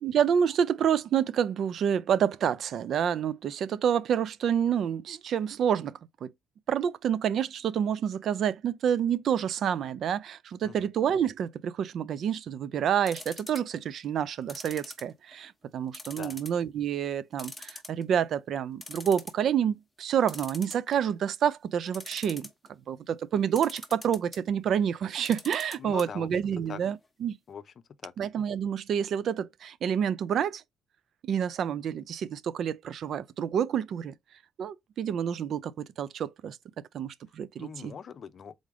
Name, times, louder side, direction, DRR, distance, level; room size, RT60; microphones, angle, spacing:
voice 1, 0.0-6.3 6.7-27.4 28.2-30.6 31.2-34.1 34.6-36.6 36.9-37.9, right 8 dB, 65° right, 0.4 m, -28 dB
sound 1, 13.1-13.8 14.5-15.5 15.9-16.6 17.0-17.1 17.4-18.2 18.5-18.6 18.8-19.4 20.3-21.2 21.9-22.7 23.6-24.4 25.2-26.0 26.3-26.4 26.7-26.8, left 2 dB, 10° left, 1.0 m, -43 dB
voice 2, 25.8-26.3 26.7-26.8 27.5-28.1 37.6-38.5, left 7 dB, 55° left, 0.5 m, -42 dB
3.8 x 3.3 x 3.6 m
cardioid pair, 90°, 0 cm